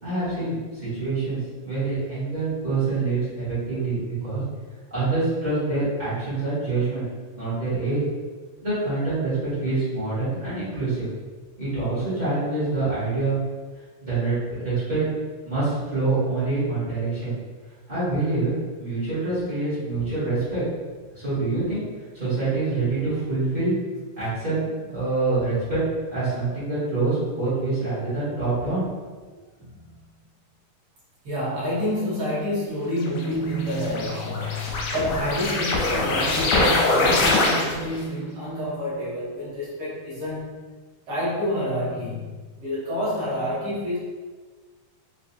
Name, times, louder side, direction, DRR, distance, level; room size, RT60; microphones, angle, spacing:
voice 1, 0.0-4.4 4.9-7.0 7.4-8.0 8.6-11.1 11.6-13.4 14.0-15.0 15.4-17.3 17.9-18.5 18.8-20.6 21.1-21.8 22.1-23.7 24.2-25.8 26.1-28.9, right 3 dB, 85° right, -14 dB, 0.4 m, -26 dB
voice 2, 31.2-40.6 41.1-44.0, equal, 60° right, -9 dB, 1.6 m, -28 dB
sound 1, 33.0-38.0, left 2 dB, 85° left, 2.1 m, -23 dB
5.3 x 2.3 x 2.7 m, 1.4 s
omnidirectional pair, 3.6 m